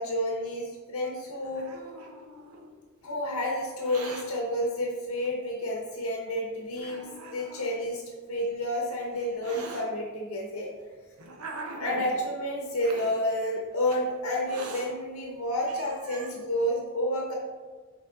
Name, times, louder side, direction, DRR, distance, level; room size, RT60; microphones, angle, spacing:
voice 1, 0.0-1.7 3.0-8.0 8.3-10.7 11.8-17.3, left 1 dB, 85° left, 0 dB, 1.0 m, -30 dB
Hiss, 1.1-2.7 3.6-4.2 5.2-5.3 6.1-6.2 6.8-7.8 8.6-9.8 10.7-12.2 12.8-13.1 13.8-14.0 14.4-14.9 15.4-15.5 15.6-16.4, right 3 dB, 80° right, 0.9 m, -43 dB
6.6 x 4.5 x 3.6 m, 1.5 s
head